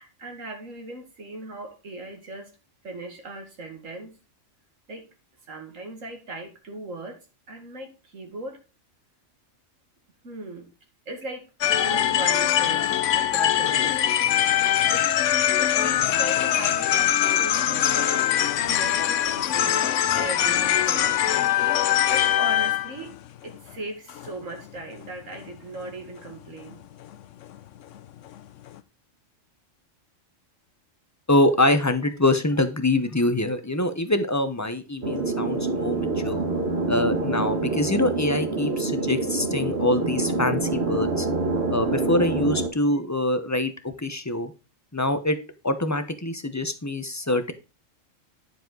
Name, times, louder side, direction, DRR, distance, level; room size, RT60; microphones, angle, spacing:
voice 1, 0.0-2.5 2.8-4.1 4.9-5.1 5.5-7.2 7.5-8.6 10.2-10.7 11.1-11.5 11.7-14.0 14.7-18.3 18.6-19.9 20.1-21.2 21.6-23.1 23.4-26.8, right 2 dB, 75° right, 4 dB, 2.4 m, -38 dB
sound 1, 11.6-23.2 23.5-23.7 24.1-24.3 24.6-24.7 25.0-25.1 25.4-25.5 25.8-25.9 26.3-26.4 26.7-26.8 27.1-27.2 27.4-27.6 28.0-28.1 28.3-28.4 28.7-28.8, left 11 dB, 75° left, 1.0 m, -22 dB
voice 2, 31.3-36.4 36.9-41.3 41.7-44.5 44.9-45.4 45.6-47.5, left 1 dB, 15° left, 9 dB, 0.8 m, -24 dB
sound 2, 35.0-42.7, right 3 dB, 55° right, 1.6 m, -26 dB
9.9 x 7.2 x 3.9 m, 0.30 s
omnidirectional pair, 1.3 m